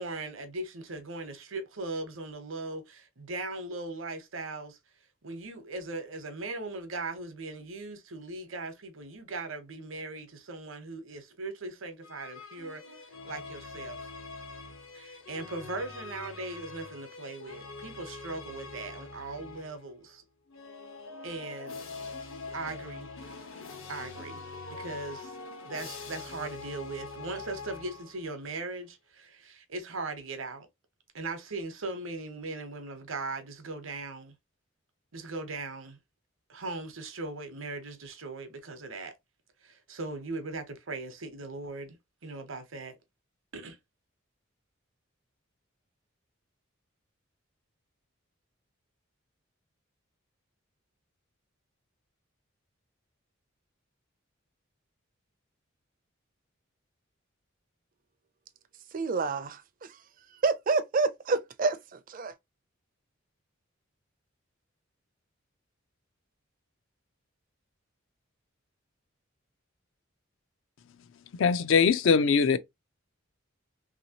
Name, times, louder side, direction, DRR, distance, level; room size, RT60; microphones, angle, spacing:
voice 1, 0.0-4.8 5.2-12.8 13.2-14.0 14.9-20.2 21.2-21.8 22.5-23.1 23.9-24.4 24.7-25.4 25.6-30.7 31.1-34.3 35.1-36.0 36.5-39.1 39.6-43.0 43.5-43.8, right 3 dB, 75° right, 0.9 m, -39 dB
sound 1, 12.0-19.9 20.5-28.4, left 3 dB, 85° left, 1.1 m, -44 dB
voice 2, 58.9-60.0 60.4-62.3, right 4 dB, 45° right, 0.4 m, -28 dB
voice 3, 71.3-72.6, left 5 dB, 65° left, 0.4 m, -22 dB
3.1 x 2.8 x 2.8 m
head